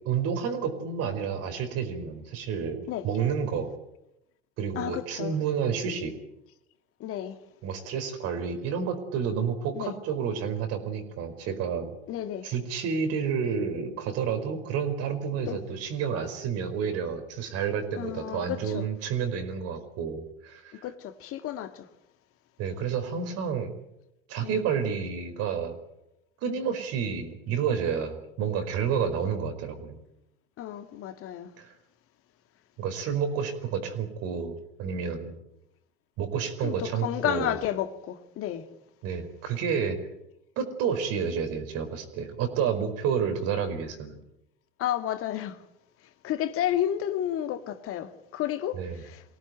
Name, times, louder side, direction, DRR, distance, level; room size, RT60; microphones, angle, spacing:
voice 1, 0.0-3.7 4.6-6.1 7.6-11.9 12.4-20.9 22.6-23.7 24.3-25.8 26.4-30.0 31.6-31.7 32.8-35.3 36.2-37.5 39.0-40.0 40.6-44.2 48.7-49.0, right 7 dB, 55° right, 4.9 m, -30 dB
voice 2, 4.8-5.3 7.0-7.4 9.7-10.0 12.1-12.5 15.5-15.6 18.0-18.8 20.7-21.9 24.4-24.6 30.6-31.5 36.6-38.6 44.8-45.6 46.2-49.2, left 11 dB, 50° left, 2.1 m, -31 dB
23.5 x 17.5 x 9.3 m
hypercardioid pair, 85°, 30 cm